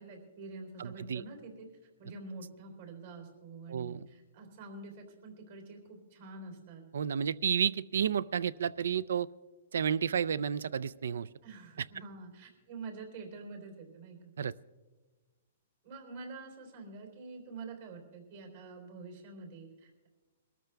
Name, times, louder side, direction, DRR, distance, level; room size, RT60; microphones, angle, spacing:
voice 1, 0.0-1.7 2.0-6.8 11.4-14.2 15.8-20.1, right 3 dB, 60° right, 3 dB, 3.7 m, -47 dB
voice 2, 0.8-1.2 3.7-4.1 6.9-9.3 9.7-11.3 14.4-14.5, right 8 dB, 80° right, 21 dB, 0.4 m, -31 dB
21.5 x 13.5 x 3.4 m, 1.3 s
hypercardioid pair, 155°, 0 cm